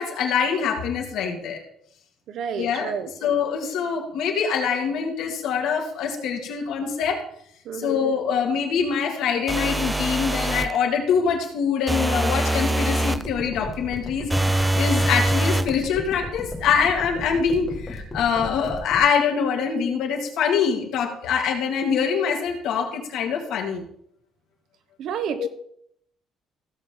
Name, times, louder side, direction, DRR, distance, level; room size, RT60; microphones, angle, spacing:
voice 1, 0.0-1.6 2.6-7.2 7.7-23.9 25.3-25.5, left 6 dB, 70° left, 2 dB, 2.2 m, -24 dB
voice 2, 2.3-3.1 7.7-8.0 25.0-25.5, right 7 dB, 60° right, 11 dB, 1.0 m, -30 dB
sound 1, 9.5-10.8 11.9-13.3 14.3-15.7, right 1 dB, 5° right, 0.3 m, -23 dB
sound 2, 13.1-19.0, left 2 dB, 15° left, 2.0 m, -34 dB
16.0 x 7.3 x 3.8 m, 0.68 s
cardioid pair, 160°, 0 cm